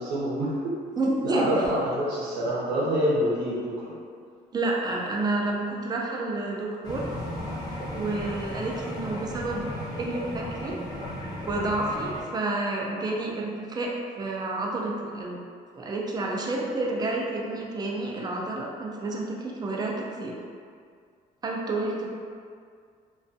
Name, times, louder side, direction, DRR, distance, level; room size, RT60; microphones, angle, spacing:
voice 1, 0.0-0.8 1.2-3.9, equal, 80° right, -7 dB, 0.7 m, -26 dB
voice 2, 1.0-1.5 4.5-7.0 7.9-9.7 10.0-10.8 11.5-15.4 15.7-20.3 21.4-22.1, right 2 dB, 25° right, -1 dB, 0.4 m, -29 dB
sound 1, 6.8-12.2, left 1 dB, 25° left, 0.6 m, -35 dB
2.4 x 2.3 x 2.6 m, 2.1 s
cardioid pair, 110°, 17 cm